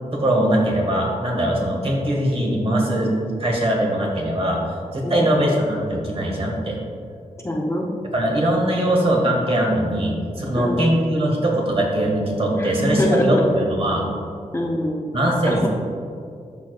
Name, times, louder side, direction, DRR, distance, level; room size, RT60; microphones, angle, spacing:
voice 1, 0.1-3.1 3.4-4.6 4.9-6.8 8.1-14.0 15.1-15.7, right 1 dB, 45° right, -2 dB, 1.6 m, -21 dB
voice 2, 5.0-5.3 7.4-7.9 10.5-10.8 12.6-13.4 14.5-15.2 15.5-15.7, left 1 dB, 20° left, -1 dB, 0.7 m, -24 dB
11.5 x 4.6 x 2.3 m, 2.3 s
wide cardioid pair, 90°, 14 cm